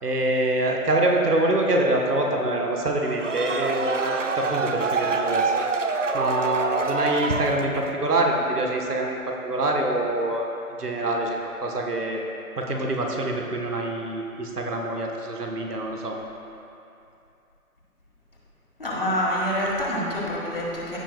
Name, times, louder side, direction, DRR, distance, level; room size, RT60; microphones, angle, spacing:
voice 1, 0.0-5.7 6.1-10.5 10.8-12.2 12.6-16.2, right 1 dB, 85° right, 0 dB, 1.3 m, -25 dB
sound 1, 3.0-8.0, right 4 dB, 55° right, 0.5 m, -26 dB
voice 2, 18.8-21.0, equal, 40° left, -5 dB, 1.5 m, -26 dB
15.5 x 5.2 x 2.3 m, 2.7 s
figure-of-eight pair, 165°, 45 cm